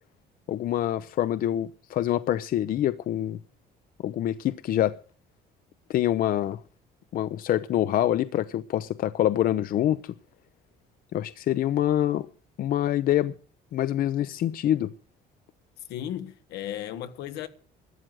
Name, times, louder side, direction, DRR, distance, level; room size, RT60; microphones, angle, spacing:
voice 1, 0.5-3.4 4.0-5.0 5.9-6.6 7.1-10.1 11.1-12.3 12.6-13.3 13.7-14.9, left 12 dB, 60° left, 0.6 m, -25 dB
voice 2, 15.9-17.5, left 11 dB, 85° left, 1.2 m, -35 dB
12.5 x 7.6 x 9.2 m
cardioid pair, 110°, 17 cm